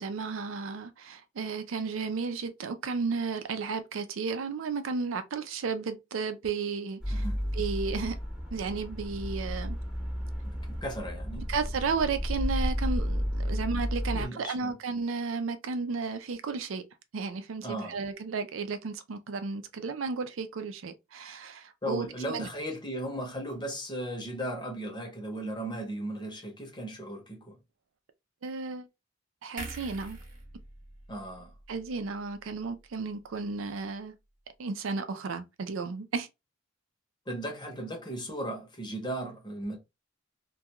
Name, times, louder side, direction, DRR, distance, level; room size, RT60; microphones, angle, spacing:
voice 1, 0.0-7.2 7.5-8.2 8.5-9.8 11.5-16.8 17.1-22.5 28.4-28.9 29.4-30.2 31.7-34.1 34.6-36.3, right 4 dB, 85° right, 0.5 m, -33 dB
sound 1, 7.0-14.3, equal, 5° right, 0.7 m, -32 dB
voice 2, 7.1-7.4 10.5-11.5 14.1-14.7 17.6-18.0 21.8-27.6 31.1-31.5 37.3-39.8, right 1 dB, 25° left, 0.8 m, -36 dB
sound 2, 29.6-32.9 33.3-33.5, right 2 dB, 45° right, 0.9 m, -46 dB
2.3 x 2.3 x 2.8 m
head